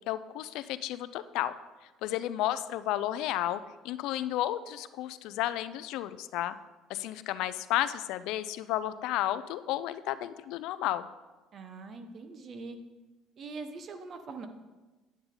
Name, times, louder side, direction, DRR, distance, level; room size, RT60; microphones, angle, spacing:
voice 1, 0.1-1.5 2.0-6.5 6.9-11.1, left 13 dB, 75° left, 14 dB, 0.4 m, -32 dB
voice 2, 11.5-12.8 13.4-14.5, right 4 dB, 50° right, 7 dB, 1.1 m, -42 dB
9.4 x 8.8 x 3.8 m, 1.2 s
supercardioid pair, 90°, 0 cm